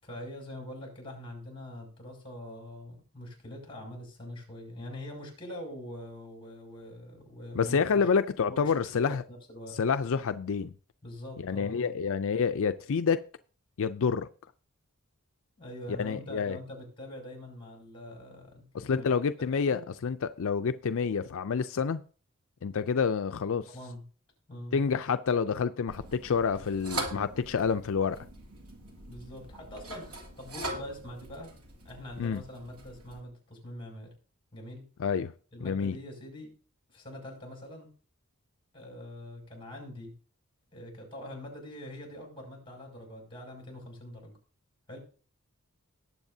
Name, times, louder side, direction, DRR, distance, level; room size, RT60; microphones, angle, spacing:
voice 1, 0.0-7.8 8.5-9.8 11.0-11.9 15.6-19.1 19.5-19.8 23.7-24.0 24.5-24.8 29.1-31.5 31.8-34.1 34.5-34.8 35.5-36.5 36.9-37.9 38.7-40.1 40.7-44.4 44.9-45.0, left 1 dB, 25° left, 6.2 m, -44 dB
voice 2, 7.5-9.2 9.8-10.7 11.4-13.2 13.8-14.3 16.0-16.6 18.7-22.0 22.6-23.7 24.7-28.2 32.2-32.4 35.0-35.3 35.6-36.0, left 6 dB, 65° left, 0.5 m, -28 dB
sound 1, 25.9-33.2, right 1 dB, 80° right, 2.7 m, -42 dB
19.0 x 7.9 x 2.7 m
head